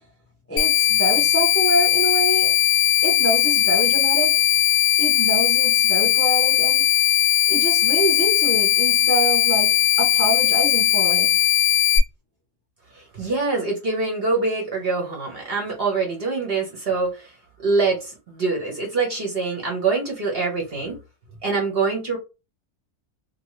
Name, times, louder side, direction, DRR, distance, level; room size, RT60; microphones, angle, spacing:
voice 1, 0.5-2.6 3.0-4.3 5.0-6.8 7.5-11.4, right 1 dB, 20° left, 0.4 m, -26 dB
sound 1, 0.6-12.0, left 12 dB, 65° left, 0.8 m, -19 dB
voice 2, 12.9-17.3 17.6-21.0 21.4-22.2, right 4 dB, 50° right, 0.8 m, -24 dB
2.7 x 2.2 x 3.0 m
omnidirectional pair, 1.7 m